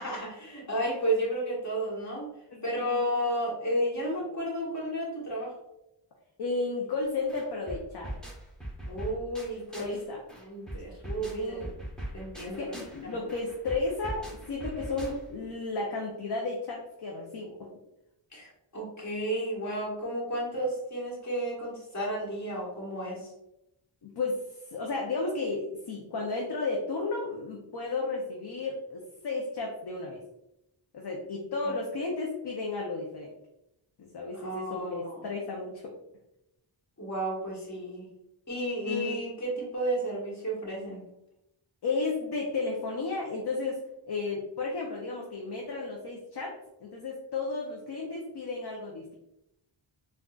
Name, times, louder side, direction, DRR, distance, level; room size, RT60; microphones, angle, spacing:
voice 1, 0.0-2.3 2.6-5.5 8.8-10.0 10.4-11.7 12.1-12.7 13.0-13.3 18.3-23.3 31.6-31.8 34.3-35.3 37.0-38.1 38.5-41.0, right 1 dB, 35° left, -5 dB, 1.3 m, -32 dB
voice 2, 2.5-3.0 6.4-8.1 9.8-10.2 11.2-11.7 12.4-17.7 24.0-30.2 30.9-33.3 34.0-35.9 38.8-39.2 41.8-43.8 44.1-49.1, left 3 dB, 55° left, -1 dB, 0.6 m, -33 dB
sound 1, 7.0-7.1 7.3-10.0 10.3-15.5, right 1 dB, ahead, 0.8 m, -41 dB
3.7 x 2.3 x 2.3 m, 0.86 s
wide cardioid pair, 65°, 50 cm